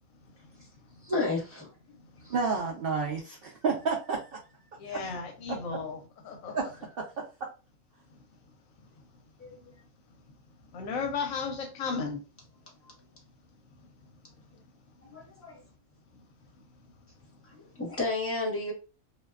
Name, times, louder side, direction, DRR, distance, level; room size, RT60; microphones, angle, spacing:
voice 1, 1.0-1.7 2.2-2.3 9.4-9.5 15.1-15.6 17.8-18.7, left 2 dB, 10° left, 0.7 m, -31 dB
voice 2, 2.3-4.2 4.9-5.0 6.5-6.7, right 4 dB, 90° right, 0.5 m, -29 dB
voice 3, 4.8-6.7 10.7-12.2, left 5 dB, 70° left, 0.9 m, -34 dB
2.5 x 2.2 x 2.2 m
omnidirectional pair, 1.5 m